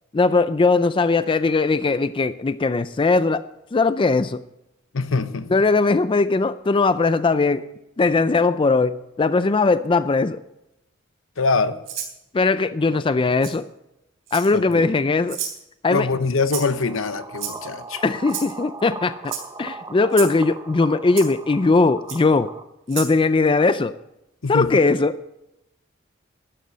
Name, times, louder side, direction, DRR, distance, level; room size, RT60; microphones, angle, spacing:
voice 1, 0.1-3.4 3.7-4.4 5.5-7.7 8.0-10.4 12.3-13.7 14.3-15.4 15.8-16.1 18.0-19.3 19.6-22.5 22.9-23.9 24.5-25.1, left 3 dB, 25° left, 13 dB, 0.4 m, -19 dB
voice 2, 4.9-5.5 11.4-11.8 12.9-13.0 14.5-14.8 15.9-18.0 24.4-24.8, left 4 dB, 75° left, 12 dB, 0.9 m, -24 dB
Rattle (instrument), 11.8-12.1 13.4-13.5 14.3-14.7 15.3-15.6 16.5-16.8 17.4-17.8 18.3-18.5 19.2-19.4 20.1-20.3 21.2-21.3 22.1-22.2 22.9-23.1, right 9 dB, 70° right, 3.5 m, -31 dB
sound 1, 16.6-22.6, right 3 dB, 20° right, 0.9 m, -38 dB
12.5 x 10.0 x 6.3 m, 0.88 s
head